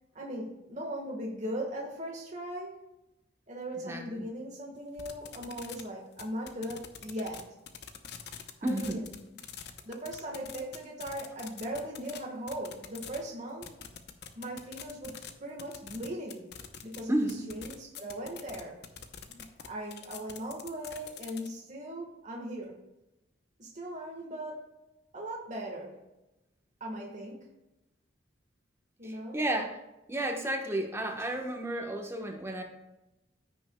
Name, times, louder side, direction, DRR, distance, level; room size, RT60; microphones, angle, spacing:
voice 1, 0.1-2.8 3.5-7.5 8.6-9.2 9.8-13.7 14.3-16.5 16.8-18.8 19.3-22.8 23.6-24.7 25.1-26.0 26.8-27.5 29.0-29.4, right 1 dB, 45° right, -2 dB, 1.5 m, -39 dB
voice 2, 3.8-4.3 8.6-9.0 17.1-17.5 29.0-29.8 30.1-32.6, right 1 dB, 15° right, 2 dB, 1.1 m, -32 dB
sound 1, 5.0-5.8 6.1-7.4 7.7-12.2 12.5-13.2 13.6-15.3 15.6-17.0 17.3-21.5, left 8 dB, 65° left, 0.8 m, -44 dB
15.0 x 6.2 x 2.3 m, 0.96 s
head